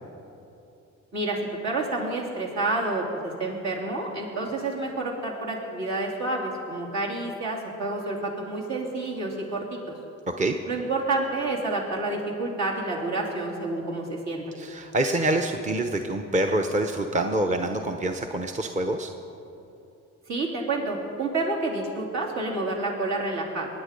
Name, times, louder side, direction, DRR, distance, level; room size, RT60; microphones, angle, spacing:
voice 1, 1.6-9.9 10.7-14.4 20.3-23.7, right 2 dB, 65° right, -2 dB, 3.2 m, -29 dB
voice 2, 14.6-19.1, right 1 dB, 25° right, 4 dB, 0.8 m, -26 dB
22.5 x 9.5 x 5.2 m, 2.9 s
cardioid pair, 90°, 30 cm